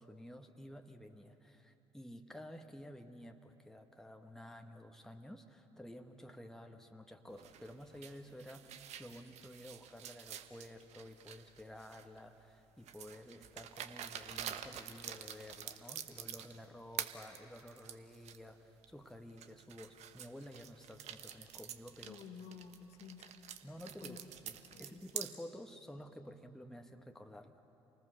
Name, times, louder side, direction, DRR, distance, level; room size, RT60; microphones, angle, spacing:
voice 1, 0.0-22.2 23.6-24.2 24.4-27.6, left 1 dB, 5° left, 5 dB, 1.5 m, -52 dB
sound 1, 7.4-12.2 12.9-16.7 17.0-18.4 18.8-18.9 19.4-25.3, right 9 dB, 55° right, 1.1 m, -47 dB
voice 2, 22.0-23.7 24.0-24.3 24.7-25.0, left 6 dB, 50° left, 6 dB, 1.6 m, -52 dB
28.5 x 20.0 x 6.5 m, 3.0 s
figure-of-eight pair, 55°, 14 cm